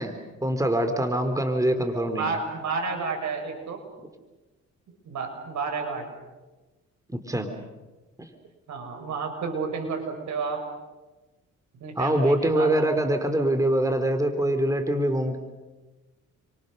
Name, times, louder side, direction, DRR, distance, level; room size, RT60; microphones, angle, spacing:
voice 1, 0.0-2.4 7.1-7.5 8.2-8.3 12.0-15.4, right 1 dB, 10° right, 7 dB, 3.2 m, -24 dB
voice 2, 2.2-3.8 4.9-6.1 8.7-10.6 11.8-12.8, right 4 dB, 70° right, 5 dB, 6.4 m, -31 dB
29.5 x 25.5 x 6.6 m, 1.2 s
cardioid pair, 90°, 30 cm